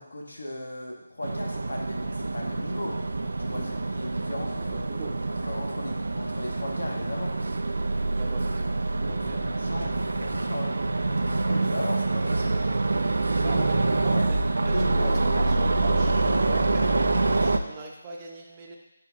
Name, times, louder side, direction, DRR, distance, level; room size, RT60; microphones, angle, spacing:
voice 1, 0.0-3.0 3.4-4.8 5.4-7.3 9.0-10.8 11.1-12.6 13.2-13.7 14.1-14.3 14.7-15.4, left 1 dB, 80° left, 0 dB, 1.8 m, -36 dB
sound 1, 1.2-17.6, right 2 dB, 75° right, 0.6 m, -26 dB
voice 2, 3.5-3.8 4.6-5.2 8.1-8.7 9.1-9.8 13.4-16.1 16.5-18.8, right 3 dB, 20° right, -2 dB, 1.0 m, -41 dB
8.3 x 4.7 x 3.8 m, 0.92 s
figure-of-eight pair, 165°, 0 cm